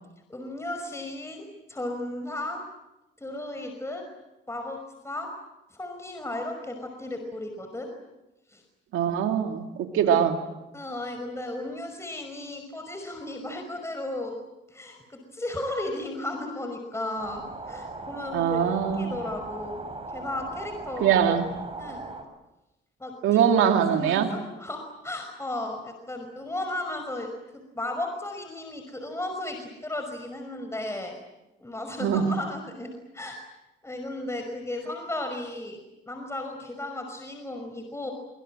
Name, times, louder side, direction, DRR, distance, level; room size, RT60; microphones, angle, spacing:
voice 1, 0.3-2.6 3.2-4.0 4.5-4.8 5.0-5.3 5.7-7.9 8.5-8.6 10.0-10.1 10.7-14.3 14.7-19.8 20.1-21.4 21.8-22.0 23.0-31.2 31.6-33.4 33.8-35.8 36.1-38.1, left 1 dB, 15° left, 4 dB, 5.5 m, -35 dB
voice 2, 8.9-10.4 18.3-19.2 21.0-21.5 23.2-24.3 32.0-32.2, right 8 dB, 90° right, 4 dB, 2.5 m, -22 dB
sound 1, 17.2-22.2, right 3 dB, 30° right, 6.2 m, -38 dB
25.5 x 25.5 x 7.7 m, 0.96 s
cardioid pair, 90°, 20 cm